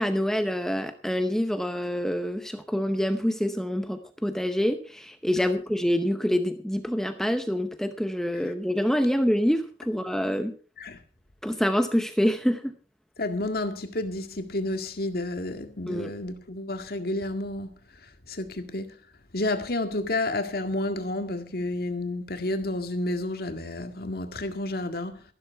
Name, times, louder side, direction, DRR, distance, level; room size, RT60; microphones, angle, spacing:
voice 1, 0.0-10.5 11.4-12.7 15.9-16.1, equal, 5° left, 0.7 m, -26 dB
voice 2, 13.2-17.7 18.3-19.0 19.3-25.2, left 2 dB, 60° left, 2.0 m, -30 dB
14.0 x 12.5 x 4.6 m
head